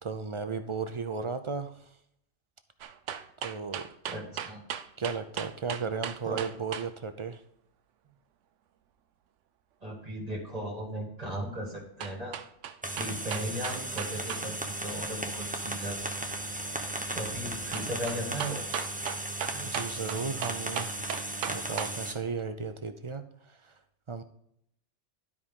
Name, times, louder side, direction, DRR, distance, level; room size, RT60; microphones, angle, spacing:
voice 1, 0.0-1.9 3.4-3.9 5.0-7.4 19.6-20.9 21.5-23.7 24.1-24.2, right 5 dB, 50° right, 9 dB, 0.3 m, -35 dB
sound 1, 2.8-6.9 12.0-14.5 14.7-14.8 17.7-22.0 22.4-22.5, right 9 dB, 85° right, 1.0 m, -37 dB
voice 2, 4.1-4.6 6.2-6.4 9.8-12.4 12.9-16.1 17.1-18.7 19.5-19.7, right 1 dB, 35° right, -1 dB, 1.7 m, -37 dB
sound 2, 12.8-22.1, right 1 dB, 10° right, 0.7 m, -36 dB
12.0 x 4.9 x 3.7 m, 0.72 s
omnidirectional pair, 1.2 m